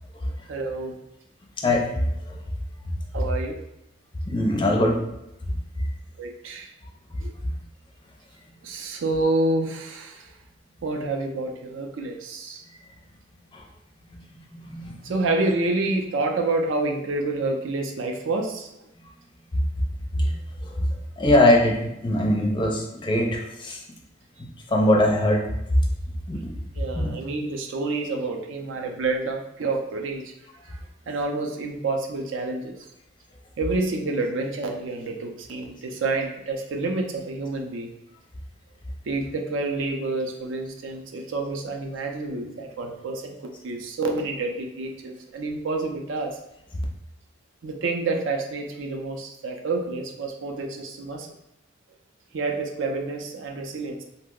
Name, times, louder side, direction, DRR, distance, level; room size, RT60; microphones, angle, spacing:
voice 1, 0.5-0.9 3.1-3.6 6.2-6.7 7.2-7.3 8.6-10.3 10.8-12.6 15.0-18.7 26.8-30.2 30.6-30.8 31.1-32.7 33.6-37.9 39.1-46.4 47.6-51.3 52.3-54.0, right 3 dB, 75° right, 3 dB, 0.4 m, -28 dB
voice 2, 1.6-1.9 4.3-5.0 13.5-13.6 14.6-14.9 20.2-20.3 21.2-23.8 24.7-25.4 26.3-26.5 26.9-27.2, left 1 dB, 25° left, 0 dB, 0.4 m, -21 dB
2.7 x 2.0 x 3.6 m, 0.85 s
head